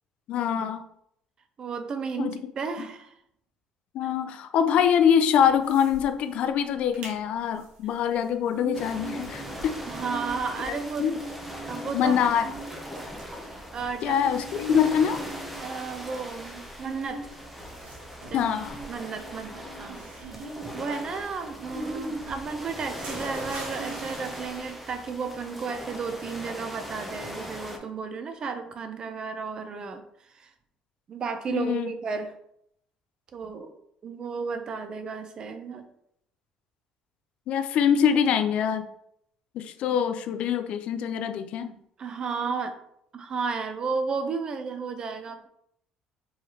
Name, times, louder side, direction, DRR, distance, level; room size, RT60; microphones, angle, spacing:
voice 1, 0.3-0.8 2.2-2.4 2.8-2.9 3.9-9.8 10.7-11.2 11.9-12.5 14.0-15.2 18.3-18.8 31.5-31.9 37.5-38.9 39.5-41.7, left 8 dB, 65° left, 9 dB, 0.4 m, -24 dB
voice 2, 1.6-3.1 4.0-4.1 9.9-11.1 11.7-12.1 12.4-12.5 13.4-14.2 15.6-17.3 18.3-18.5 18.9-30.0 30.3-30.5 31.1-32.3 33.3-33.7 34.0-35.9 42.0-42.8 43.1-45.5, right 5 dB, 40° right, 9 dB, 0.5 m, -33 dB
sound 1, 5.4-6.0 6.3-6.4 6.8-7.2 7.6-24.7, right 2 dB, 80° right, 1.4 m, -41 dB
sound 2, 8.7-27.8, equal, 5° right, 0.7 m, -40 dB
4.7 x 3.1 x 2.8 m, 0.73 s
cardioid pair, 125°, 2 cm